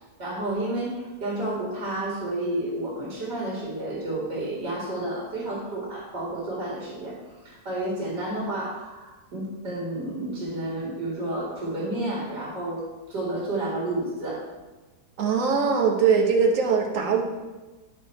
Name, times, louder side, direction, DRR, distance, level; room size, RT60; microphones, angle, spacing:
voice 1, 0.2-12.8 13.1-14.5, right 1 dB, 75° right, -6 dB, 2.7 m, -31 dB
voice 2, 15.2-17.2, right 5 dB, 50° right, 1 dB, 1.5 m, -21 dB
10.0 x 6.1 x 4.4 m, 1.2 s
omnidirectional pair, 1.8 m